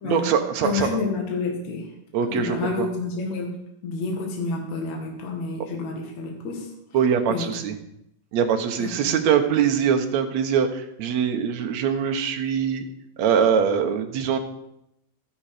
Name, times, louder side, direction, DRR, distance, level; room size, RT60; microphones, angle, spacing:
voice 1, 0.0-1.0 2.1-2.9 6.9-7.7 8.3-12.9 13.2-14.4, right 7 dB, 65° right, 5 dB, 2.3 m, -23 dB
voice 2, 0.6-1.9 2.3-3.5 3.8-6.7 7.3-7.5 8.8-8.9, left 3 dB, 60° left, 1 dB, 3.2 m, -29 dB
13.5 x 10.5 x 5.0 m, 0.80 s
omnidirectional pair, 3.6 m